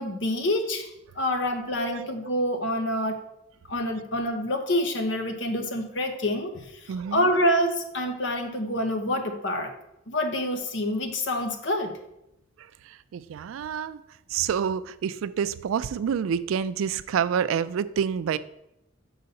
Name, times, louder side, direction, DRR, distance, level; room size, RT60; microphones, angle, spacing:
voice 1, 0.0-3.2 3.7-9.7 10.1-12.0, left 1 dB, 65° left, 6 dB, 0.9 m, -27 dB
voice 2, 1.8-2.4 6.9-7.3 12.6-14.0 14.3-18.4, right 7 dB, 85° right, 15 dB, 0.3 m, -28 dB
5.6 x 4.0 x 5.3 m, 0.85 s
head